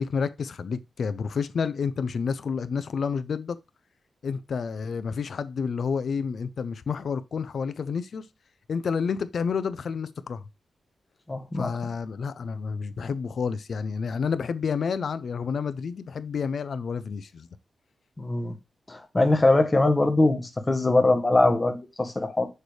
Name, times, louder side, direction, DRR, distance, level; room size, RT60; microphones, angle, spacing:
voice 1, 0.0-3.6 4.2-8.3 8.7-10.5 11.5-17.5, left 6 dB, 60° left, 0.5 m, -29 dB
voice 2, 11.3-11.7 18.2-18.5 18.9-22.5, left 2 dB, 20° left, 1.1 m, -22 dB
6.5 x 3.3 x 4.8 m
wide cardioid pair, 150°, 0 cm